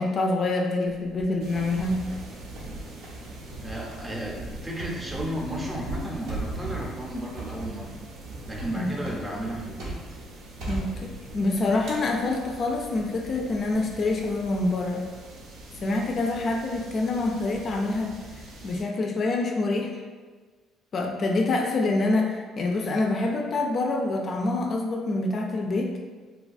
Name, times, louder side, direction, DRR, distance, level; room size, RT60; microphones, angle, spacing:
voice 1, 0.0-2.0 8.8-8.9 10.7-15.0 15.8-18.1 18.6-20.0 20.9-25.9, left 2 dB, 45° left, 1 dB, 0.3 m, -26 dB
sound 1, 0.9-1.8 2.1-2.7 3.0-3.2 3.7-10.2 10.6-11.4 11.9-12.8 13.3-13.7, right 2 dB, 90° right, 0.8 m, -40 dB
sound 2, 1.4-18.8, right 2 dB, 70° right, 0.5 m, -41 dB
voice 2, 3.6-8.1 8.5-10.0, right 1 dB, 15° right, -2 dB, 0.6 m, -34 dB
3.1 x 2.2 x 2.5 m, 1.4 s
cardioid pair, 95°, 0 cm